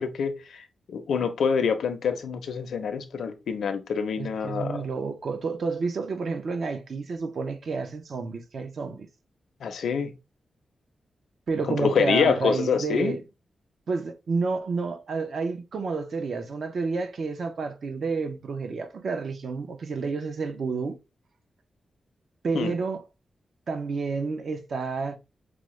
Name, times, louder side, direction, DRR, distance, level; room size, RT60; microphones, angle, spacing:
voice 1, 0.0-4.9 9.6-10.1 11.7-13.2 22.5-22.7, left 6 dB, 90° left, 0.5 m, -26 dB
voice 2, 4.2-9.1 11.5-13.2 13.9-21.0 22.4-23.0 23.7-25.2, right 4 dB, 55° right, 0.5 m, -30 dB
4.8 x 2.0 x 3.1 m
wide cardioid pair, 150°, 0 cm